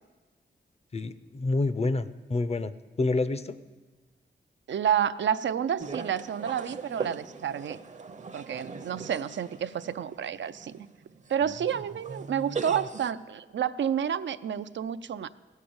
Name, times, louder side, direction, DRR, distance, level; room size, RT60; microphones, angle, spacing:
voice 1, 0.9-3.6, left 3 dB, 35° left, 14 dB, 0.6 m, -28 dB
voice 2, 4.7-7.8 8.3-10.9 11.3-15.3, right 9 dB, 80° right, 12 dB, 0.5 m, -30 dB
sound 1, 5.8-13.1, right 4 dB, 40° right, 0.7 m, -40 dB
16.0 x 6.6 x 8.7 m, 1.3 s
wide cardioid pair, 90°, 19 cm